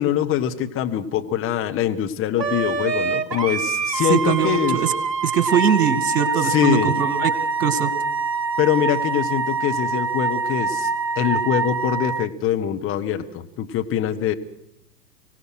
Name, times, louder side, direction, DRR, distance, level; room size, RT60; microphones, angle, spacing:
voice 1, 0.0-4.8 6.4-6.9 8.6-10.9 11.1-14.3, left 10 dB, 25° left, 6 dB, 1.6 m, -23 dB
Wind instrument woodwind instrument, 2.4-12.3, right 4 dB, 80° right, 1.1 m, -25 dB
voice 2, 4.1-4.9 5.2-7.3 7.6-7.9, right 8 dB, 60° right, 12 dB, 2.2 m, -21 dB
24.5 x 17.5 x 6.3 m, 0.79 s
figure-of-eight pair, 100°, 50 cm